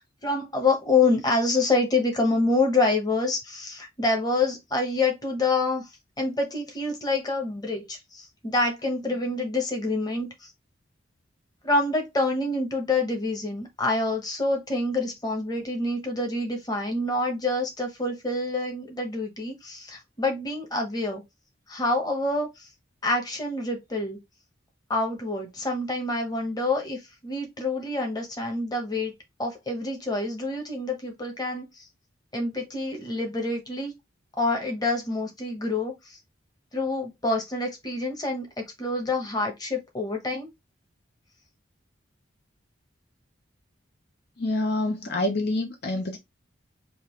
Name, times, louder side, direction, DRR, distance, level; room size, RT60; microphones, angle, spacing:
voice 1, 0.2-5.9 6.2-10.5 11.6-21.2 21.7-22.7 23.0-24.2 24.9-29.1 29.4-31.9 32.3-33.9 34.4-36.2 36.7-40.5, left 2 dB, 20° left, 1.1 m, -27 dB
voice 2, 44.4-46.2, left 2 dB, 55° left, 0.6 m, -27 dB
5.3 x 2.4 x 3.0 m
head